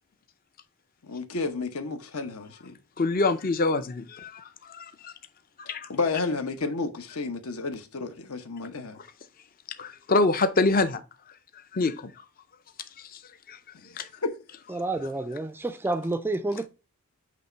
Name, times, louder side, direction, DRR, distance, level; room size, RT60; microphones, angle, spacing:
voice 1, 1.0-2.7 5.9-9.0 13.7-13.9 14.2-14.3, left 3 dB, 75° left, 1.0 m, -31 dB
voice 2, 3.0-5.1 5.6-5.9 9.8-11.0 11.7-12.2 13.0-13.2 13.5-13.6 14.0-14.1, left 3 dB, 40° left, 0.5 m, -26 dB
voice 3, 14.7-16.7, right 2 dB, 10° right, 0.3 m, -29 dB
8.3 x 3.0 x 4.4 m
head